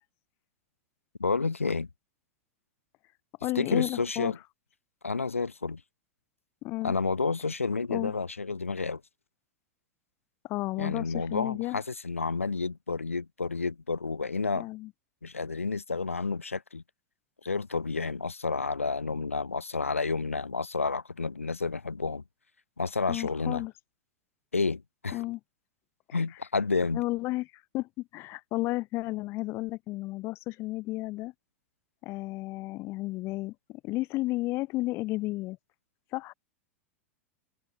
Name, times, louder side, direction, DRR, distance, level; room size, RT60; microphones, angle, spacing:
voice 1, 1.2-1.9 3.5-4.4 5.0-5.8 6.8-9.0 10.8-14.7 15.2-16.8 17.4-22.2 22.8-23.6 24.5-25.2 26.1-27.0, left 4 dB, 80° left, 1.2 m, -30 dB
voice 2, 3.4-4.3 6.6-6.9 7.9-8.1 10.4-11.8 14.6-14.9 23.1-23.7 25.1-25.4 26.9-31.3 32.0-35.6 36.1-36.3, left 19 dB, 35° left, 1.3 m, -33 dB
open air
figure-of-eight pair, 90°, 7 cm